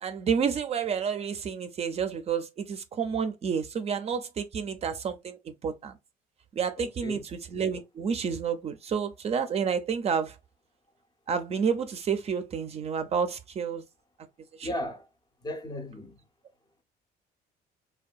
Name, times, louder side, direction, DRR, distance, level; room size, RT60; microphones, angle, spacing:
voice 1, 0.0-5.4 5.6-5.9 6.6-10.4 11.3-13.8 14.6-14.7, right 6 dB, 40° right, 0.4 m, -30 dB
voice 2, 6.8-7.2 14.6-15.1 15.4-16.2, left 1 dB, 25° left, 0.5 m, -36 dB
2.6 x 2.2 x 2.3 m
cardioid pair, 110°, 17 cm